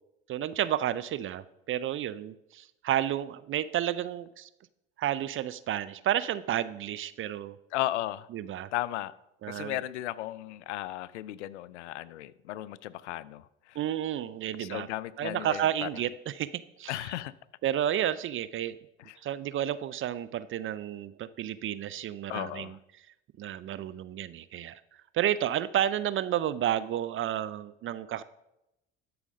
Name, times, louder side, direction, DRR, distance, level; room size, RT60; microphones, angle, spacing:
voice 1, 0.3-4.5 5.0-7.6 8.3-8.7 9.4-9.8 13.8-14.9 15.2-16.5 16.8-17.0 17.6-18.8 19.2-22.7 23.4-24.8 25.1-28.2, right 11 dB, 40° right, 15 dB, 0.5 m, -31 dB
voice 2, 7.7-8.3 8.7-9.1 9.5-13.8 14.6-16.0 16.9-17.3 19.1-19.2 22.3-22.8, left 14 dB, 85° left, 19 dB, 0.5 m, -35 dB
12.5 x 4.9 x 5.2 m, 0.87 s
hypercardioid pair, 75°, 34 cm